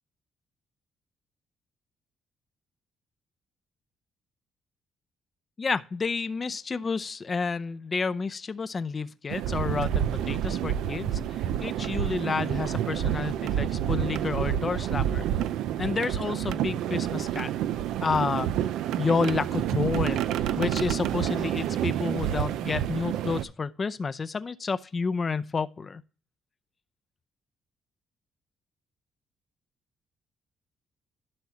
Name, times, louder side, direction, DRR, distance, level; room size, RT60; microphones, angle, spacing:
voice 1, 5.6-11.2 11.6-15.3 15.8-17.5 18.0-18.5 19.0-26.0, left 4 dB, 35° left, 0.6 m, -30 dB
sound 1, 9.3-23.4, right 11 dB, 90° right, 0.5 m, -28 dB
12.0 x 6.1 x 2.9 m
cardioid pair, 90°, 0 cm